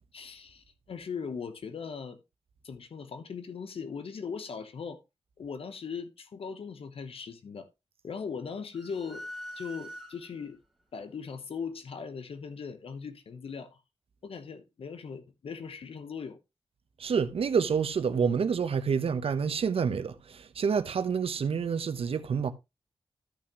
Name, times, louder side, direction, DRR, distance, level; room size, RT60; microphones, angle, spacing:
voice 1, 0.1-2.2 2.6-5.0 5.4-7.7 8.0-9.2 9.5-10.6 10.9-13.8 14.2-16.4, left 6 dB, 75° left, 1.0 m, -39 dB
sound 1, 8.7-10.6, equal, ahead, 2.7 m, -44 dB
voice 2, 17.0-22.5, right 6 dB, 80° right, 0.9 m, -28 dB
13.5 x 6.1 x 3.0 m
wide cardioid pair, 150°, 10 cm